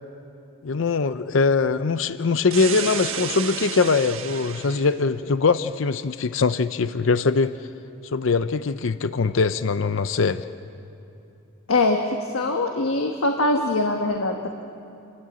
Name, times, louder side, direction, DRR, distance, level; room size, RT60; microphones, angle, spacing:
voice 1, 0.6-7.5 8.0-10.4, left 4 dB, 70° left, 12 dB, 0.6 m, -22 dB
sound 1, 2.5-5.0, right 8 dB, 80° right, 1.3 m, -31 dB
voice 2, 11.7-14.5, left 2 dB, 90° left, 3 dB, 1.4 m, -23 dB
29.0 x 13.0 x 8.9 m, 2.7 s
head